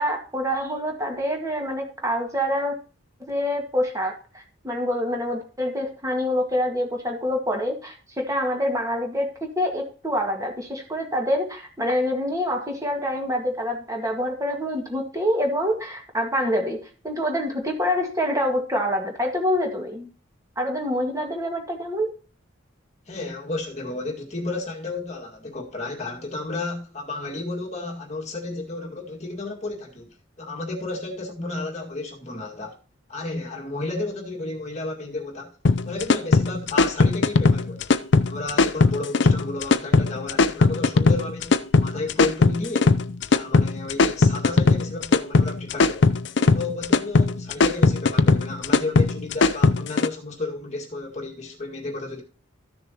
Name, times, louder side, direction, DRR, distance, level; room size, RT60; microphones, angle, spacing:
voice 1, 0.0-2.8 3.3-20.1 20.6-22.1, equal, 15° right, 1.7 m, -26 dB
voice 2, 23.1-32.8 33.1-35.5 35.8-37.9 38.2-43.0 43.3-46.1 46.5-52.2, left 2 dB, 35° left, 2.0 m, -32 dB
sound 1, 35.7-50.1, left 3 dB, 55° left, 0.5 m, -19 dB
13.5 x 6.8 x 2.9 m
head